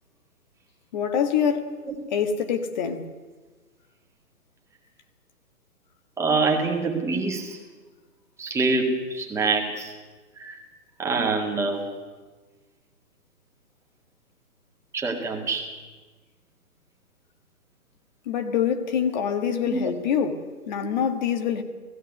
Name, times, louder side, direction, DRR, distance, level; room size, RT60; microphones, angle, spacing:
voice 1, 0.9-1.8 2.1-3.1 18.2-21.6, left 7 dB, 30° left, 1.5 m, -25 dB
voice 2, 6.2-7.6 8.4-9.9 10.4-10.6 11.0-11.8 14.9-15.7 19.7-19.8, right 3 dB, 5° right, 1.9 m, -25 dB
16.5 x 16.5 x 9.5 m
figure-of-eight pair, 135°, 46 cm